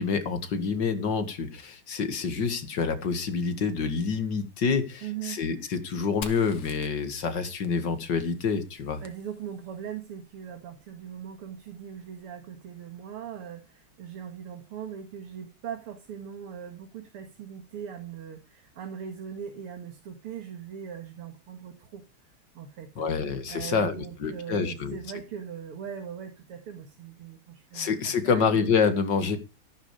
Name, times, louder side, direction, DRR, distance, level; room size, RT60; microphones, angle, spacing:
voice 1, 0.0-9.0 23.0-25.0 27.7-29.4, left 5 dB, 55° left, 10 dB, 2.4 m, -27 dB
voice 2, 5.0-5.4 9.0-22.0 22.6-23.1 23.5-28.7, right 8 dB, 80° right, 5 dB, 2.7 m, -40 dB
Fire, 6.2-9.9, left 6 dB, 80° left, 2.5 m, -46 dB
14.5 x 11.5 x 4.9 m, 0.30 s
omnidirectional pair, 2.4 m